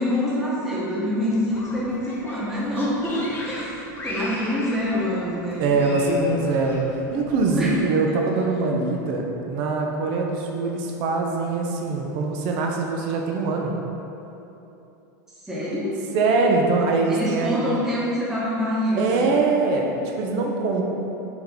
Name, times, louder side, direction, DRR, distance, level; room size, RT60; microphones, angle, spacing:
voice 1, 0.0-6.2 7.6-7.7 8.1-8.2 15.4-15.9 17.1-19.3, left 1 dB, 5° right, -9 dB, 0.9 m, -26 dB
sound 1, 1.5-7.8, left 1 dB, 20° left, 0.6 m, -39 dB
voice 2, 5.6-13.7 16.1-17.6 18.9-20.8, right 3 dB, 55° right, 1 dB, 0.6 m, -23 dB
3.3 x 2.9 x 3.9 m, 3.0 s
hypercardioid pair, 110°, 10 cm